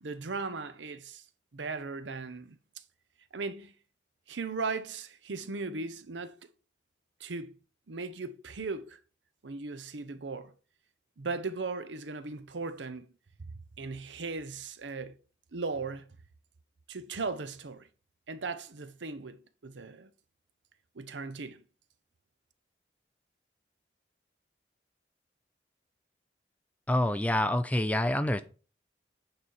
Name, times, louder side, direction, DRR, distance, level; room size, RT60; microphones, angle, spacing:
voice 1, 0.0-1.2 1.5-2.6 3.3-3.7 4.3-6.5 7.2-7.5 7.9-9.0 9.4-10.5 11.2-13.1 13.8-15.2 15.5-16.1 16.9-17.9 18.3-20.1 20.9-21.6, right 4 dB, 90° right, 0.8 m, -37 dB
voice 2, 26.9-28.4, left 1 dB, 10° left, 0.5 m, -27 dB
8.8 x 4.1 x 4.7 m
head